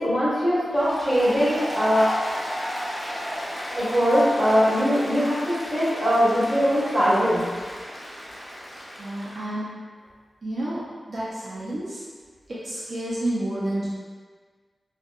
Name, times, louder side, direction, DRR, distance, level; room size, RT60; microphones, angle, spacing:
voice 1, 0.0-2.1 3.8-7.4, equal, 20° right, -11 dB, 1.5 m, -21 dB
Applause, 0.7-9.4, equal, 30° left, 0.6 m, -34 dB
voice 2, 9.0-9.6 10.4-10.8 11.1-12.0 12.5-13.8, right 1 dB, 65° right, -9 dB, 0.6 m, -30 dB
3.6 x 2.3 x 2.3 m, 1.5 s
wide cardioid pair, 100°, 0 cm